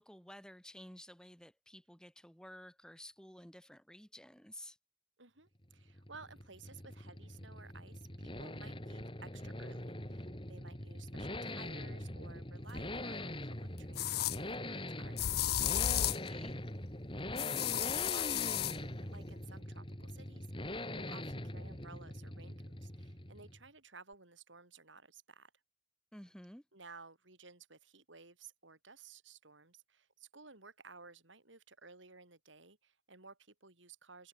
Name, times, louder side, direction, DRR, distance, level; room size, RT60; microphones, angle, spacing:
voice 1, 0.0-4.8 16.3-16.5 26.1-26.6, left 1 dB, 5° left, 6.3 m, -53 dB
voice 2, 5.2-15.8 17.3-20.5 20.8-25.5 26.7-34.3, right 4 dB, 85° right, 6.7 m, -56 dB
sound 1, 5.6-23.7, left 1 dB, 25° left, 4.6 m, -43 dB
sound 2, 12.8-12.9 14.0-14.4 15.2-16.3 17.4-18.8, left 12 dB, 55° left, 0.4 m, -33 dB
head